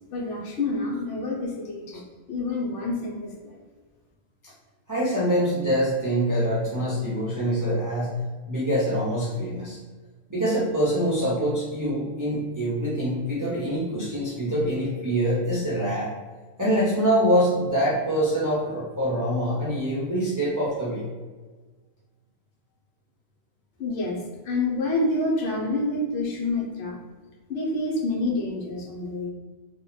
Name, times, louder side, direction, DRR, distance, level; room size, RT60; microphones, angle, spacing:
voice 1, 0.1-2.0 2.3-3.6 23.8-24.2 24.4-27.0 27.5-29.3, left 2 dB, 75° left, -2 dB, 1.0 m, -28 dB
voice 2, 4.9-9.8 10.3-16.1 16.6-21.0, equal, 25° right, -7 dB, 0.4 m, -25 dB
2.9 x 2.2 x 3.8 m, 1.4 s
omnidirectional pair, 1.3 m